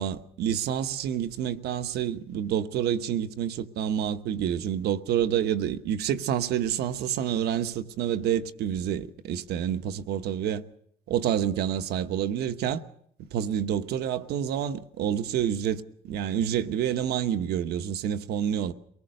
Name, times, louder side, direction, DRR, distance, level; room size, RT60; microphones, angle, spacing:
voice 1, 0.0-10.6 11.1-12.8 13.3-18.7, right 9 dB, 75° right, 1.2 m, -28 dB
23.0 x 19.0 x 6.6 m
cardioid pair, 110°, 17 cm